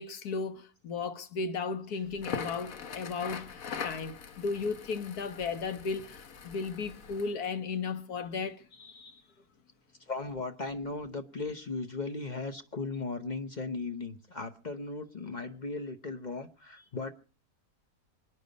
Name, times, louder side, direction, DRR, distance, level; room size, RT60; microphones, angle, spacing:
voice 1, 0.0-9.2, left 4 dB, 80° left, 1.7 m, -35 dB
Crackle, 2.1-7.3, left 6 dB, 65° left, 1.5 m, -42 dB
voice 2, 10.0-17.1, left 3 dB, 35° left, 0.9 m, -37 dB
25.0 x 9.8 x 5.2 m
omnidirectional pair, 1.6 m